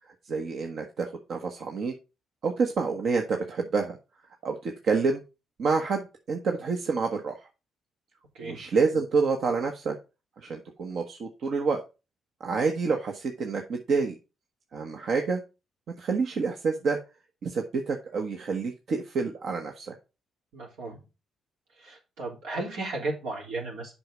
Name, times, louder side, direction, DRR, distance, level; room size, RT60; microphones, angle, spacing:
voice 1, 0.2-1.9 2.4-4.0 4.4-5.2 5.6-7.4 8.4-10.0 10.4-11.8 12.4-14.1 14.7-15.4 16.0-17.0 17.4-19.9, right 4 dB, 60° right, 3 dB, 1.2 m, -28 dB
voice 2, 20.5-21.0 21.8-24.0, right 2 dB, 85° right, -1 dB, 3.6 m, -35 dB
7.7 x 5.6 x 5.0 m, 0.29 s
cardioid pair, 90°, 0 cm